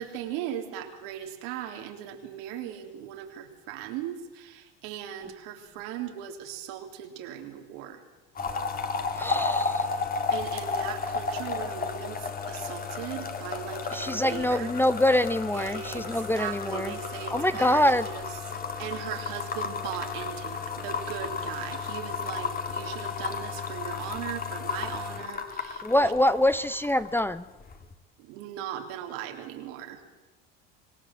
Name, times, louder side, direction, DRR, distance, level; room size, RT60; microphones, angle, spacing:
voice 1, 0.0-8.0 10.3-14.7 15.5-17.8 18.1-18.2 18.8-26.1 28.2-30.0, right 10 dB, 70° right, 5 dB, 3.4 m, -38 dB
sound 1, 8.3-27.3 27.6-27.9, left 5 dB, 30° left, 2.8 m, -33 dB
voice 2, 9.1-9.9 13.9-16.9 17.3-18.1 25.8-27.4, left 1 dB, 5° left, 14 dB, 0.7 m, -25 dB
26.0 x 18.5 x 7.6 m, 1.1 s
supercardioid pair, 90°, 30 cm